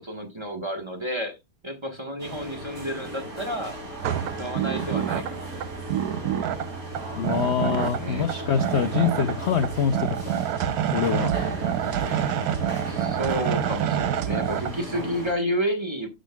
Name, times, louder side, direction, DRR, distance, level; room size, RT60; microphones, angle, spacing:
voice 1, 0.0-1.4 1.6-5.5 7.6-8.3 12.9-16.1, equal, 15° right, 3 dB, 1.2 m, -31 dB
sound 1, 2.2-15.3, equal, 50° right, 3.2 m, -37 dB
sound 2, 4.0-14.7, right 10 dB, 65° right, 1.0 m, -28 dB
voice 2, 7.2-10.3 10.9-11.3, left 7 dB, 70° left, 8 dB, 0.6 m, -25 dB
11.5 x 6.4 x 2.3 m, 0.22 s
omnidirectional pair, 2.0 m